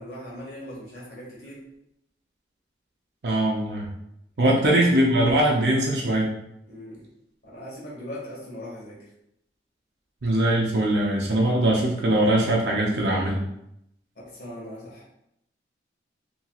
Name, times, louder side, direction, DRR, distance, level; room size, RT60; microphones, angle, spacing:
voice 1, 0.0-1.6 4.4-4.6 6.7-7.0 7.4-9.0 14.1-15.0, equal, 60° left, -7 dB, 1.4 m, -39 dB
voice 2, 3.2-3.9 4.4-6.3 10.2-13.4, right 1 dB, 75° right, -3 dB, 0.5 m, -21 dB
2.9 x 2.8 x 2.3 m, 0.79 s
head